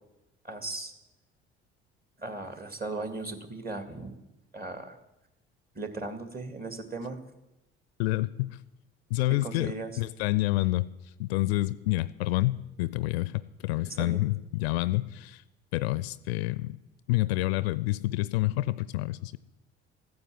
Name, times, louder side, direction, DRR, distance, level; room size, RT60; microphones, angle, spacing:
voice 1, 0.4-0.9 2.2-4.1 4.5-5.0 5.7-7.2 9.4-9.9 13.8-14.2, right 3 dB, 25° right, 7 dB, 2.4 m, -37 dB
voice 2, 8.0-8.6 9.1-10.9 11.2-15.4 15.7-16.7 17.1-19.4, left 18 dB, 65° left, 18 dB, 0.6 m, -28 dB
14.5 x 9.6 x 7.6 m, 0.94 s
figure-of-eight pair, 50°, 33 cm